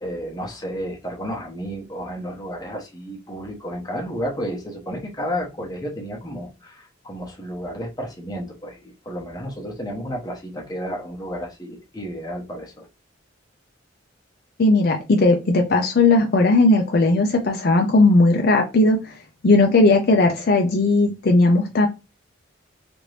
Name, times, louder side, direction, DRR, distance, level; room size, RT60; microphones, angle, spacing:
voice 1, 0.0-12.9, equal, 20° left, 0.8 m, -32 dB
voice 2, 14.6-19.1 19.4-21.9, left 2 dB, 50° left, 0.4 m, -17 dB
2.9 x 2.5 x 3.1 m
head